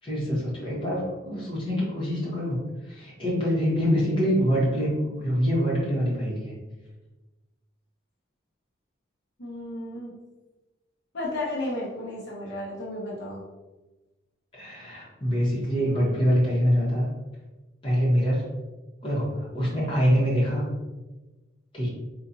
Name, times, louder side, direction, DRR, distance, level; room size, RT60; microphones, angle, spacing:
voice 1, 0.0-2.6 2.8-6.5 14.5-17.1 17.8-18.4 19.0-20.7 21.7-21.9, equal, 25° left, -7 dB, 1.1 m, -25 dB
voice 2, 9.4-10.1 11.1-13.4, left 1 dB, 60° left, -6 dB, 0.8 m, -33 dB
3.8 x 2.4 x 2.8 m, 1.1 s
head